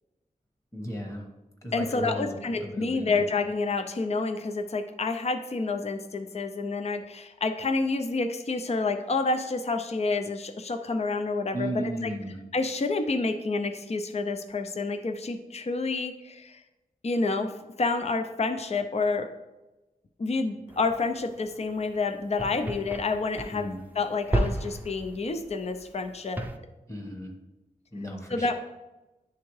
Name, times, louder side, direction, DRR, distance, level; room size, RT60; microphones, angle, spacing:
voice 1, 0.7-1.3 1.6-3.2 11.5-12.4 23.5-23.8 26.9-27.3 27.9-28.5, right 1 dB, 20° left, 1 dB, 1.2 m, -35 dB
voice 2, 1.7-12.1 12.5-16.6 17.0-19.3 20.2-26.4 28.3-28.5, left 3 dB, 45° left, 8 dB, 0.5 m, -29 dB
sound 1, 20.7-26.6, right 1 dB, 10° right, 0.5 m, -34 dB
10.0 x 3.5 x 3.2 m, 1.1 s
wide cardioid pair, 80°, 16 cm